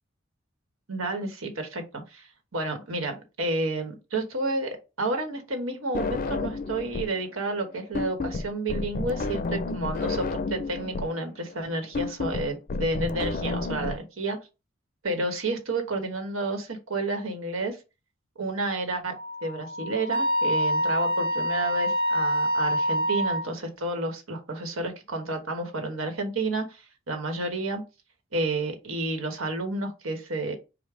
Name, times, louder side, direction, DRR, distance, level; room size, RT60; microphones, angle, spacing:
voice 1, 0.9-4.7 5.0-14.4 15.0-17.8 18.4-19.1 19.4-27.8 28.3-30.6, right 2 dB, 90° right, 1.2 m, -30 dB
sound 1, 5.9-7.2 7.5-13.9, left 3 dB, 45° left, 0.4 m, -31 dB
Wind instrument woodwind instrument, 19.1-23.5, equal, 50° right, 1.1 m, -26 dB
5.1 x 2.1 x 4.8 m
head